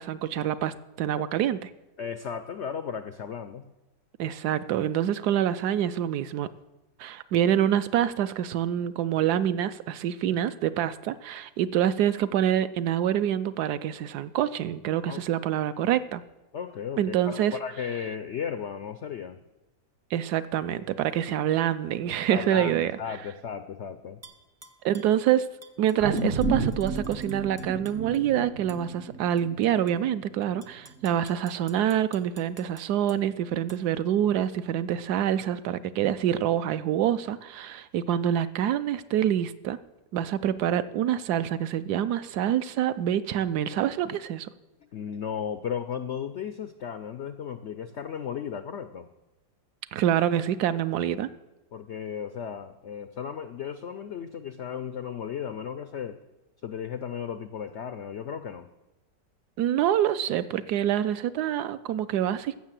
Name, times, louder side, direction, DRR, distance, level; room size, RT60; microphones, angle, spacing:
voice 1, 0.0-1.7 4.2-6.5 7.0-16.2 17.0-17.6 20.1-22.9 24.8-25.5 25.8-39.8 40.1-44.5 49.9-51.3 59.6-62.6, right 10 dB, 75° right, 13 dB, 1.0 m, -26 dB
voice 2, 2.0-3.6 15.0-15.2 16.5-19.4 22.3-24.2 44.9-49.1 51.7-56.2 56.6-58.7, left 7 dB, 85° left, 11 dB, 0.6 m, -35 dB
Tap / Glass, 24.2-25.1 25.6-28.2 28.7-28.8 29.4-29.9 30.4-33.2 33.7-33.8, right 1 dB, 20° right, 0.4 m, -52 dB
sound 1, 26.0-30.5 30.9-31.0, right 3 dB, 50° right, 0.7 m, -32 dB
14.5 x 6.4 x 7.5 m, 1.0 s
omnidirectional pair, 1.9 m